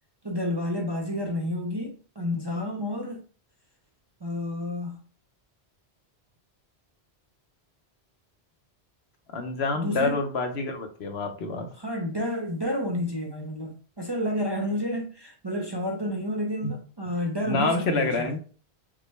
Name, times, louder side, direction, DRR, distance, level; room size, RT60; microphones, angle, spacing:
voice 1, 0.2-3.2 4.2-5.0 9.8-10.2 11.7-18.4, left 1 dB, 30° right, 0.5 m, -30 dB
voice 2, 9.3-11.7 17.5-18.4, left 3 dB, 75° left, 1.1 m, -27 dB
5.8 x 2.1 x 3.2 m
omnidirectional pair, 1.1 m